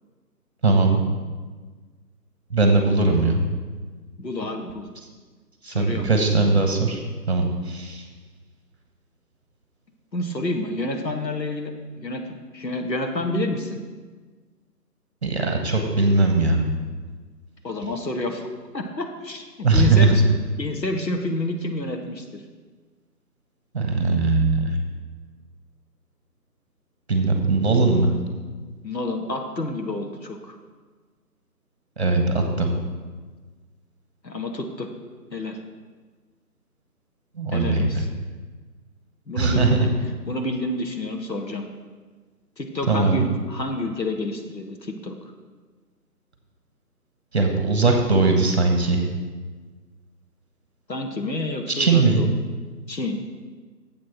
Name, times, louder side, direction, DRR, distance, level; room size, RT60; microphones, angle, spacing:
voice 1, 0.6-1.0 2.5-3.4 5.6-7.0 7.3-8.0 15.2-16.6 19.6-20.2 23.7-24.8 27.1-28.1 32.0-32.7 37.3-38.1 39.4-39.9 42.9-43.2 47.3-49.0 51.7-52.2, right 3 dB, 40° right, 4 dB, 1.3 m, -20 dB
voice 2, 4.2-4.9 5.6-6.1 10.1-12.2 12.5-13.8 17.6-18.4 18.7-20.3 20.6-22.4 28.8-30.6 34.2-34.9 35.3-35.6 37.5-38.0 39.3-39.9 40.3-41.6 42.6-45.2 50.9-52.3 52.9-53.2, left 2 dB, 85° left, 4 dB, 1.4 m, -29 dB
9.5 x 7.6 x 4.3 m, 1.4 s
figure-of-eight pair, 155°, 50 cm